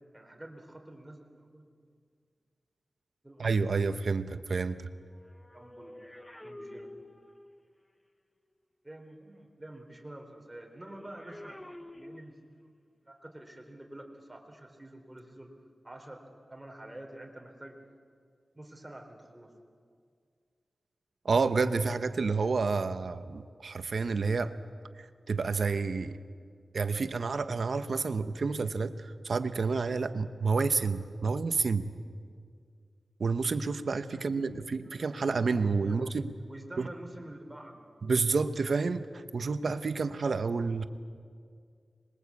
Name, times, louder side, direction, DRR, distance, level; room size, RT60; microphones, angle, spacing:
voice 1, 0.1-1.7 3.2-3.8 5.5-5.9 6.4-6.9 8.8-11.6 12.0-12.5 13.1-15.5 15.8-16.2 16.5-17.8 18.5-19.5 34.1-34.5 34.8-36.0 36.5-37.9, right 1 dB, 10° right, 2 dB, 3.5 m, -48 dB
voice 2, 3.4-4.9 21.2-24.5 25.0-26.2 26.7-31.9 33.2-36.4 36.8-36.9 38.0-40.8, right 4 dB, 65° right, 10 dB, 1.0 m, -29 dB
sound 1, 4.9-7.7 10.8-12.8 13.6-13.8, left 1 dB, 15° left, 0.9 m, -49 dB
26.0 x 21.5 x 8.4 m, 2.1 s
wide cardioid pair, 115°, 0 cm